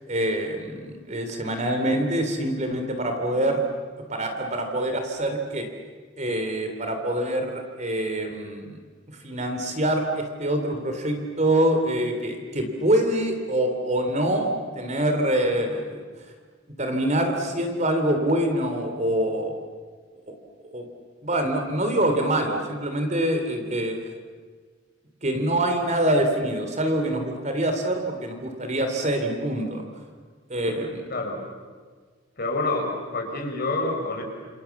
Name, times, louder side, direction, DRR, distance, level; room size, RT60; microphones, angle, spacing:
voice 1, 0.1-3.7 4.1-5.7 6.2-8.8 9.1-14.5 14.7-16.0 16.8-19.6 20.7-20.8 21.2-23.9 25.2-29.8 30.5-31.0, right 1 dB, 35° right, 5 dB, 3.4 m, -25 dB
voice 2, 31.1-31.4 32.4-34.2, left 2 dB, 50° left, 1 dB, 6.2 m, -27 dB
28.0 x 28.0 x 7.3 m, 1.5 s
head